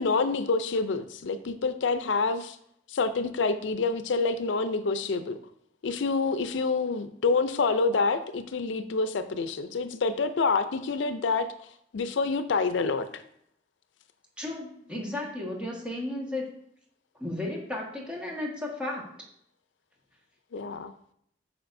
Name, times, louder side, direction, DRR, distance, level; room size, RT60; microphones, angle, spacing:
voice 1, 0.0-2.6 2.9-5.4 5.8-11.5 11.9-13.2 20.5-20.9, left 4 dB, 90° left, 11 dB, 0.5 m, -27 dB
voice 2, 14.4-16.5 17.2-19.1, left 1 dB, 5° right, -2 dB, 1.5 m, -34 dB
8.7 x 5.9 x 2.6 m, 0.71 s
head